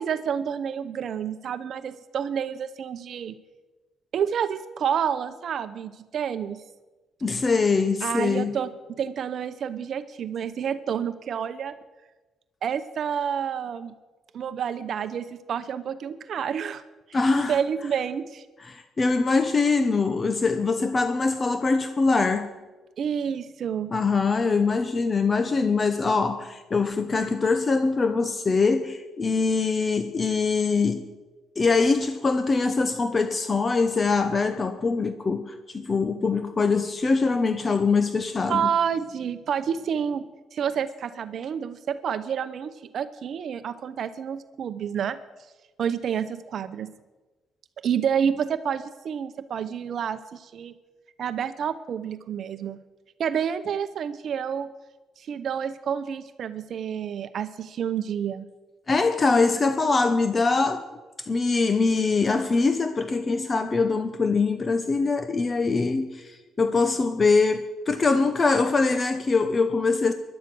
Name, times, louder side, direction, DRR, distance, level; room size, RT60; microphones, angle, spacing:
voice 1, 0.0-3.4 4.1-6.6 8.0-11.8 12.6-13.9 14.3-16.8 17.1-18.5 23.0-23.9 38.5-40.2 40.5-45.2 45.8-46.9 47.8-50.7 51.2-52.8 53.2-54.7 55.2-58.4, right 8 dB, 60° right, 11 dB, 0.8 m, -29 dB
voice 2, 7.2-8.6 17.1-17.6 18.7-22.5 23.9-31.1 31.6-38.7 58.9-60.8 61.3-70.1, left 4 dB, 35° left, 9 dB, 1.0 m, -23 dB
17.0 x 11.5 x 6.2 m, 1.2 s
cardioid pair, 90°, 0 cm